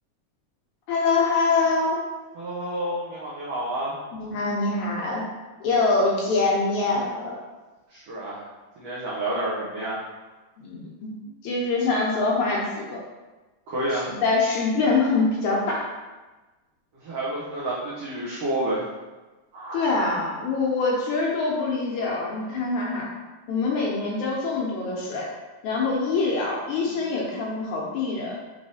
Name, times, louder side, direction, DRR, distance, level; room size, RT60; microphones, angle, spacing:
voice 1, 0.9-2.0 4.1-5.2 5.6-7.4 10.6-11.1 11.4-13.0 13.9-15.9 19.7-23.1 23.5-25.3 25.6-28.4, left 3 dB, 75° left, -3 dB, 1.8 m, -24 dB
voice 2, 2.3-4.0 7.9-8.5 8.8-10.0 13.7-14.1 17.0-18.8 19.5-19.8, right 1 dB, 85° right, -7 dB, 1.3 m, -29 dB
5.3 x 3.1 x 2.7 m, 1.2 s
omnidirectional pair, 3.8 m